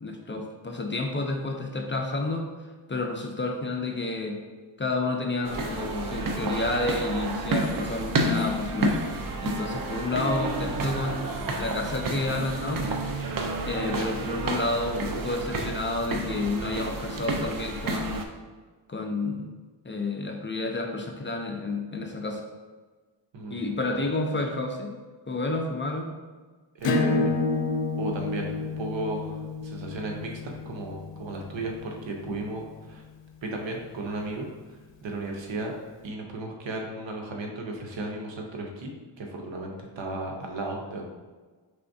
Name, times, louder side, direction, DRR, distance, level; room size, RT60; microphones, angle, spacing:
voice 1, 0.0-2.5 2.9-4.4 4.8-9.0 9.4-11.3 11.6-13.0 13.7-18.3 18.9-19.5 19.8-22.4 23.5-25.0 25.3-26.1 32.3-32.4, left 2 dB, 25° left, 3 dB, 0.5 m, -30 dB
sound 1, 5.4-18.2, right 2 dB, 50° right, 0.5 m, -30 dB
Acoustic guitar / Strum, 26.8-32.1, left 3 dB, 90° left, 0.6 m, -29 dB
voice 2, 26.8-27.3 27.9-33.0 33.4-35.8 36.0-41.1, right 2 dB, 85° right, 1 dB, 0.8 m, -35 dB
4.9 x 3.3 x 2.6 m, 1.4 s
wide cardioid pair, 80°, 43 cm